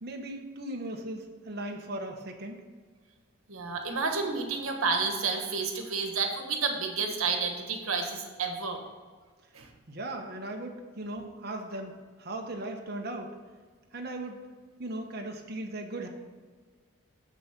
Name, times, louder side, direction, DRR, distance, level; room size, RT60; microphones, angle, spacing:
voice 1, 0.0-2.6 9.9-11.9 12.2-13.3 13.9-14.4 14.8-16.1, right 1 dB, 50° right, 2 dB, 1.1 m, -37 dB
voice 2, 3.5-8.8 9.5-9.7, right 4 dB, 85° right, 4 dB, 1.4 m, -30 dB
7.4 x 6.2 x 6.0 m, 1.5 s
head